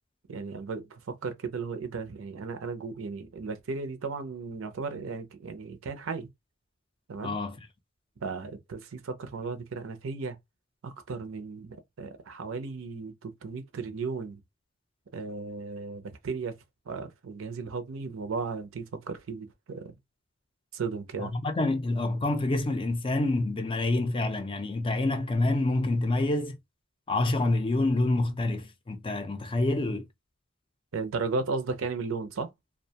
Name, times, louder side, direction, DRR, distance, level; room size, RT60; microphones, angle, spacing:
voice 1, 0.3-6.3 7.1-7.4 8.2-10.4 10.8-14.4 15.1-16.5 16.9-19.9 20.7-21.3 30.9-32.5, right 4 dB, 75° right, 0.5 m, -35 dB
voice 2, 7.2-7.6 21.2-26.6 27.1-30.1, left 2 dB, 25° left, 0.4 m, -27 dB
2.3 x 2.2 x 2.7 m
head